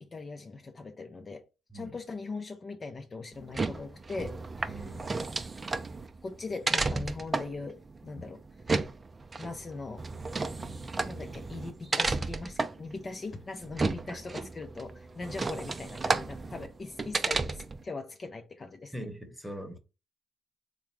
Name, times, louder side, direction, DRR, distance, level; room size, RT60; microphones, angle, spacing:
voice 1, 0.0-1.5 1.7-4.8 6.2-8.4 9.4-10.0 11.1-18.9, left 3 dB, 35° left, 0.5 m, -40 dB
sound 1, 3.3-17.8, right 3 dB, 30° right, 0.5 m, -33 dB
voice 2, 4.7-5.2 8.2-8.3 10.5-10.9 18.9-19.8, right 1 dB, 5° right, 1.0 m, -42 dB
3.5 x 2.3 x 3.1 m
supercardioid pair, 60°, 0 cm